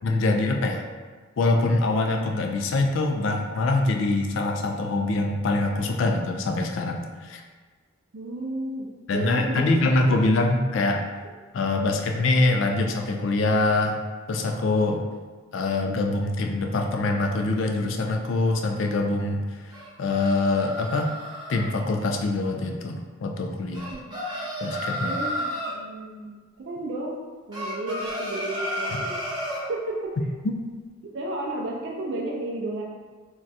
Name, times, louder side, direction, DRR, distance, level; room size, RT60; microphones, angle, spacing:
voice 1, 0.0-0.8 1.4-7.4 9.1-11.0 11.5-14.0 14.3-15.0 15.5-19.7 20.0-21.1 21.5-23.9 24.6-25.2, left 2 dB, 60° left, 3 dB, 0.3 m, -24 dB
voice 2, 8.1-9.7 10.1-10.2 23.9-24.2 25.0-27.2 27.5-29.2 29.7-30.1 31.1-32.8, right 2 dB, 55° right, -2 dB, 0.4 m, -33 dB
sound 1, 19.7-21.7 23.7-25.8 27.5-29.7, equal, 20° right, 0.9 m, -32 dB
2.4 x 2.2 x 4.0 m, 1.4 s
head